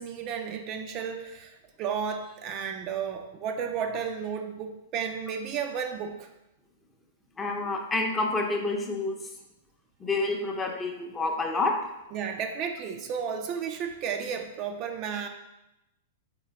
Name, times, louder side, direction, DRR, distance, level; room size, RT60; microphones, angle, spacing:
voice 1, 0.0-6.3 12.1-15.3, right 7 dB, 40° right, 5 dB, 0.4 m, -33 dB
voice 2, 7.4-9.1 10.0-11.7, left 3 dB, 20° left, 2 dB, 0.6 m, -28 dB
3.8 x 3.6 x 3.4 m, 0.91 s
hypercardioid pair, 105°, 0 cm